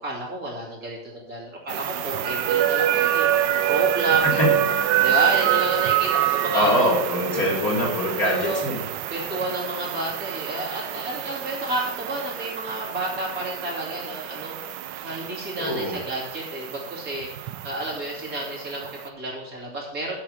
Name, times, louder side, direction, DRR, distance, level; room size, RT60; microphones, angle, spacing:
voice 1, 0.0-4.4 5.0-6.9 8.2-8.6 9.1-20.2, right 1 dB, 50° right, -4 dB, 3.2 m, -31 dB
sound 1, 1.7-19.1, right 12 dB, 75° right, 1.2 m, -26 dB
voice 2, 6.5-8.8 15.6-16.0, equal, 50° left, -4 dB, 3.8 m, -23 dB
8.0 x 6.3 x 7.7 m, 0.84 s
omnidirectional pair, 2.0 m